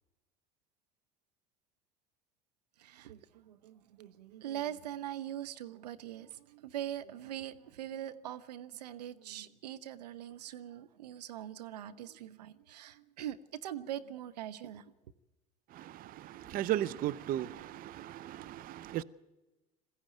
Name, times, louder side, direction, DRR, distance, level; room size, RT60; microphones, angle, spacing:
voice 1, 2.8-14.9, right 11 dB, 80° right, 0.8 m, -42 dB
voice 2, 15.7-19.0, right 12 dB, 45° right, 0.7 m, -36 dB
21.0 x 15.0 x 9.1 m
hypercardioid pair, 75°, 20 cm